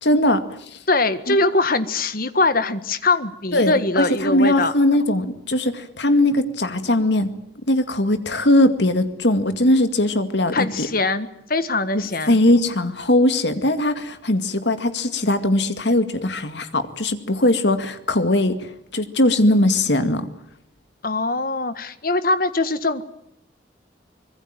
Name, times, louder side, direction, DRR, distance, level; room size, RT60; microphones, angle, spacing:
voice 1, 0.0-0.4 0.7-0.8 1.3-1.4 3.5-7.3 7.7-10.9 11.9-18.6 18.9-20.3, left 1 dB, 65° left, 9 dB, 2.2 m, -20 dB
voice 2, 0.9-4.7 10.5-12.4 21.0-23.0, left 3 dB, 50° left, 12 dB, 1.5 m, -22 dB
25.0 x 21.5 x 9.1 m, 0.73 s
head